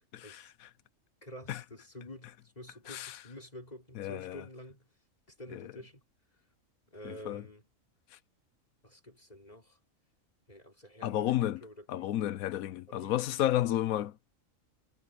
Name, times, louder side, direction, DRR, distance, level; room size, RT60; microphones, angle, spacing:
voice 1, 0.1-0.5 1.5-1.6 2.9-3.2 4.0-4.4 5.5-5.7 7.0-7.4 11.0-11.6 11.9-14.3, left 13 dB, 85° left, 1.1 m, -32 dB
voice 2, 1.2-4.8 5.3-6.0 6.9-7.7 8.8-9.8 10.5-12.1 12.9-13.2, left 1 dB, 30° left, 5.0 m, -49 dB
omnidirectional pair, 1.4 m